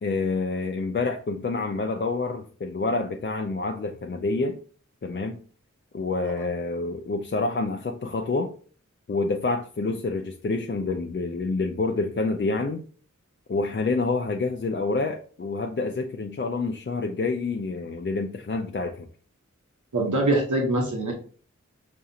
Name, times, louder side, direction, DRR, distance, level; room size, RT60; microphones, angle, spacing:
voice 1, 0.0-4.6 5.0-5.4 5.9-8.5 9.1-12.8 13.5-19.1, left 3 dB, 40° left, 0.4 m, -27 dB
voice 2, 19.9-21.1, right 2 dB, 75° right, 1.1 m, -23 dB
5.3 x 2.4 x 2.8 m
wide cardioid pair, 45°, 30 cm